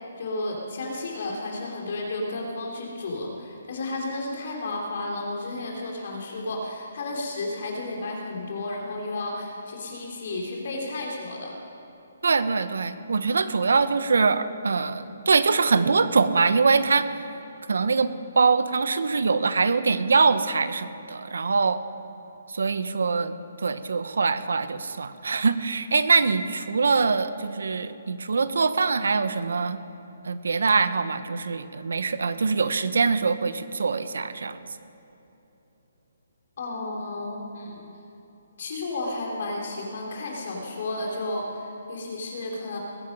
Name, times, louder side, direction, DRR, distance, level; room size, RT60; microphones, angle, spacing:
voice 1, 0.2-11.6 36.6-37.8 38.6-42.8, left 2 dB, 45° left, -1 dB, 3.1 m, -32 dB
voice 2, 12.2-17.1 17.7-21.8 22.5-23.4 23.6-29.8 30.2-34.6, right 4 dB, 80° right, 12 dB, 0.9 m, -23 dB
20.5 x 10.5 x 5.3 m, 3.0 s
hypercardioid pair, 175°, 0 cm